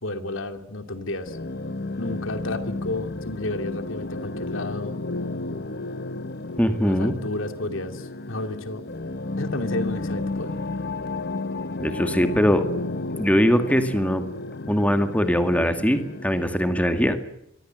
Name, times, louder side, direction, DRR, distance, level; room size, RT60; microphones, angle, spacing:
voice 1, 0.0-1.4 2.0-5.0 6.8-8.8 9.4-10.5, left 2 dB, 75° left, 8 dB, 2.7 m, -31 dB
sound 1, 1.3-16.5, left 2 dB, 50° left, 1.1 m, -32 dB
voice 2, 6.6-7.2 11.8-12.6 13.2-14.2 14.7-17.2, equal, 5° left, 8 dB, 2.1 m, -21 dB
25.5 x 23.5 x 7.7 m, 0.81 s
head